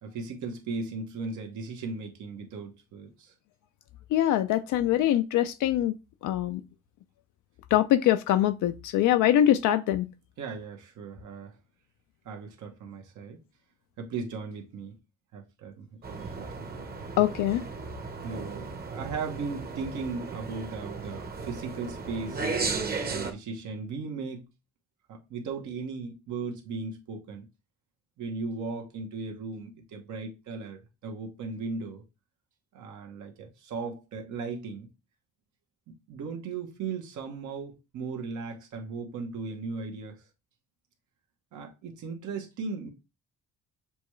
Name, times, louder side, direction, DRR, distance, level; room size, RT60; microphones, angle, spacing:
voice 1, 0.0-3.3 10.4-11.6 12.2-13.4 14.0-14.9 15.3-16.7 17.1-17.2 18.2-24.4 25.1-27.5 28.2-32.0 32.7-34.9 35.9-40.2 41.5-42.9, right 4 dB, 75° right, 1.1 m, -37 dB
voice 2, 4.1-5.9 6.2-6.6 7.7-10.1 17.2-17.6, left 12 dB, 80° left, 0.5 m, -23 dB
sound 1, 16.0-23.3, right 4 dB, 30° right, 0.9 m, -35 dB
6.9 x 2.3 x 3.1 m
cardioid pair, 90°, 30 cm